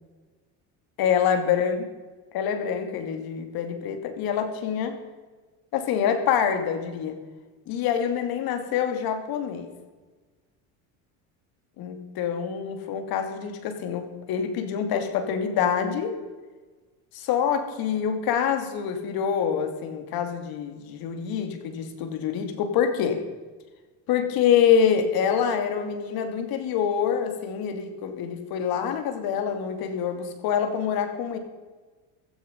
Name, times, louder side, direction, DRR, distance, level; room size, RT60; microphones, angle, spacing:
voice 1, 1.0-1.8 2.3-4.9 5.7-7.2 7.7-9.7 11.8-16.1 17.1-23.2 24.1-31.4, left 8 dB, 65° left, 7 dB, 2.6 m, -26 dB
16.0 x 14.5 x 5.3 m, 1.3 s
cardioid pair, 115°, 39 cm